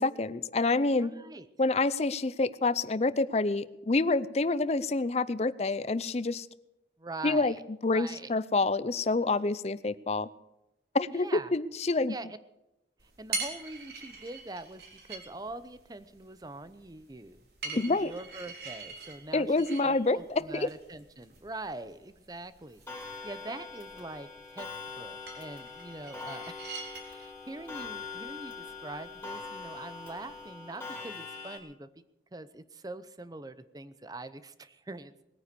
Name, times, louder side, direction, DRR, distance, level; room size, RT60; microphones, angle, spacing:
voice 1, 0.0-1.1 1.6-6.5 7.2-7.5 7.8-10.3 10.9-12.1 17.8-18.1 19.3-20.7, left 3 dB, 35° left, 17 dB, 0.5 m, -27 dB
voice 2, 1.0-1.5 7.0-7.6 7.9-8.3 11.1-11.5 12.1-12.3 13.2-19.6 19.8-24.7 25.0-26.6 27.0-31.9 32.3-35.1, right 2 dB, 20° right, 14 dB, 0.7 m, -43 dB
sound 1, 13.0-30.5, right 4 dB, 65° right, 3.6 m, -45 dB
Clock, 22.9-31.6, left 4 dB, 10° left, 4.0 m, -43 dB
20.0 x 9.5 x 6.8 m, 0.92 s
head